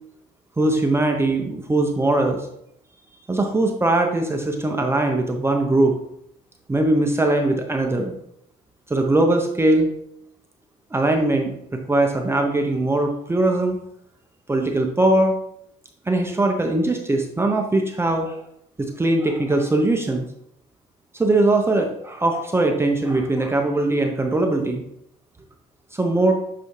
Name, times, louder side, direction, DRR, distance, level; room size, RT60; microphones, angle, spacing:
voice 1, 0.6-2.5 3.3-5.9 6.7-8.1 8.9-9.9 10.9-13.8 14.5-15.4 16.1-18.4 18.8-20.3 21.1-24.8 25.9-26.4, right 2 dB, 15° right, 2 dB, 0.7 m, -20 dB
8.0 x 4.1 x 3.2 m, 0.74 s
cardioid pair, 110°, 17 cm